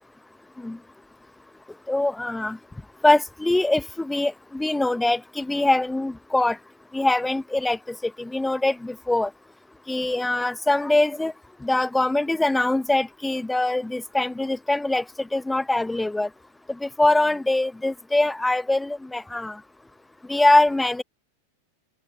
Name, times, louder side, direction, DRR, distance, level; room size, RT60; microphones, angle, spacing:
voice 1, 1.9-2.6 3.0-6.6 6.9-9.3 9.9-11.3 11.6-16.3 16.8-19.6 20.3-21.0, left 2 dB, 5° left, 1.1 m, -23 dB
figure-of-eight pair, 90°, 0 cm